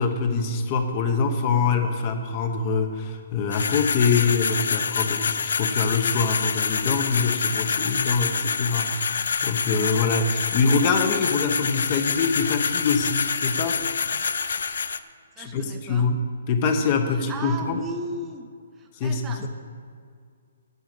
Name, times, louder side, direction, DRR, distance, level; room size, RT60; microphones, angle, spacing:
voice 1, 0.0-13.8 15.4-16.2 16.5-17.8 19.0-19.5, left 5 dB, 35° left, 6 dB, 1.0 m, -24 dB
sound 1, 3.5-15.0, left 5 dB, 75° left, 0.4 m, -26 dB
voice 2, 15.4-16.1 17.1-18.5 18.8-19.5, right 2 dB, 15° right, 5 dB, 0.6 m, -36 dB
8.1 x 7.3 x 7.6 m, 2.2 s
hypercardioid pair, 150°, 0 cm